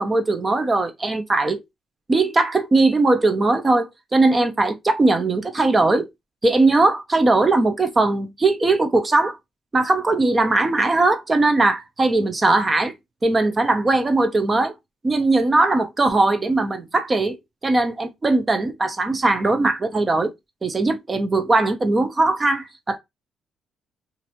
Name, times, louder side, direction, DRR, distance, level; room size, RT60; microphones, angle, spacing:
voice 1, 0.0-1.6 2.1-6.1 6.4-9.4 9.7-12.9 13.2-14.7 15.0-17.4 17.6-20.3 20.6-23.0, right 2 dB, 25° right, 0.7 m, -19 dB
3.0 x 2.6 x 2.6 m
cardioid pair, 90°, 0 cm